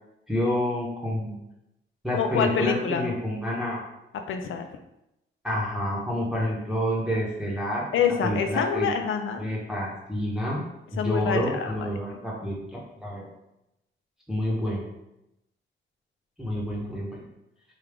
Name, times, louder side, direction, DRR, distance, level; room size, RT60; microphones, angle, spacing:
voice 1, 0.3-1.4 2.0-3.8 5.4-7.8 8.2-8.9 9.4-10.6 10.9-13.2 14.3-14.9 16.4-17.2, equal, 5° right, -5 dB, 0.9 m, -28 dB
voice 2, 2.1-3.1 4.3-4.7 7.9-9.4 10.9-11.9, left 7 dB, 80° left, 6 dB, 0.4 m, -26 dB
3.5 x 2.3 x 3.4 m, 0.87 s
cardioid pair, 90°, 21 cm